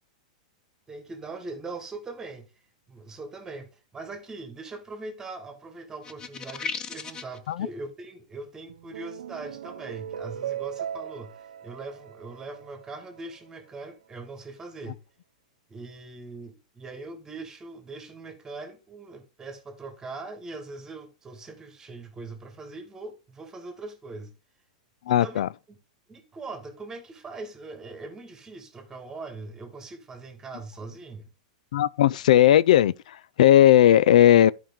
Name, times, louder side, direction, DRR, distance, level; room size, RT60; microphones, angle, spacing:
voice 1, 0.9-2.5 2.9-15.0 15.7-24.3 25.1-25.8 26.1-31.3, right 3 dB, 15° right, 1.6 m, -41 dB
sound 1, 6.0-7.4, left 5 dB, 20° left, 0.6 m, -35 dB
sound 2, 8.7-13.3, right 10 dB, 90° right, 0.6 m, -38 dB
voice 2, 25.1-25.5 31.7-34.5, left 12 dB, 75° left, 0.3 m, -17 dB
12.0 x 5.2 x 3.6 m
hypercardioid pair, 140°, 4 cm